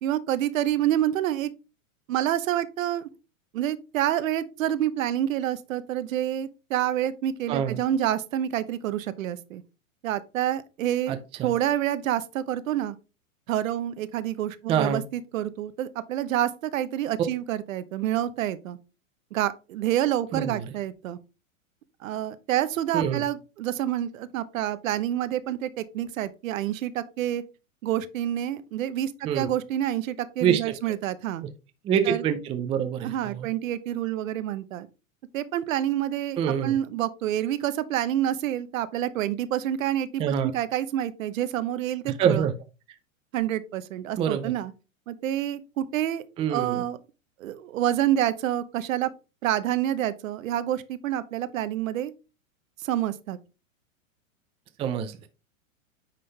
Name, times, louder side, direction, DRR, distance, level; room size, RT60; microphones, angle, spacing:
voice 1, 0.0-1.5 2.1-3.1 3.5-9.6 10.0-11.1 11.4-13.0 13.5-18.8 19.3-21.2 22.0-27.4 27.8-31.4 32.1-32.2 33.0-34.9 35.3-42.5 43.3-44.7 45.1-46.2 46.5-47.0 47.4-49.1 49.4-52.1 52.8-53.4, right 12 dB, 70° right, 0.8 m, -28 dB
voice 2, 7.5-7.8 11.1-11.5 14.7-15.0 20.3-20.7 22.9-23.2 29.2-29.5 30.4-30.7 31.8-33.5 36.4-36.7 40.2-40.5 42.2-42.5 44.2-44.5 46.4-46.8 54.8-55.3, right 8 dB, 15° right, 0.4 m, -26 dB
9.5 x 3.8 x 3.3 m
hypercardioid pair, 135°, 41 cm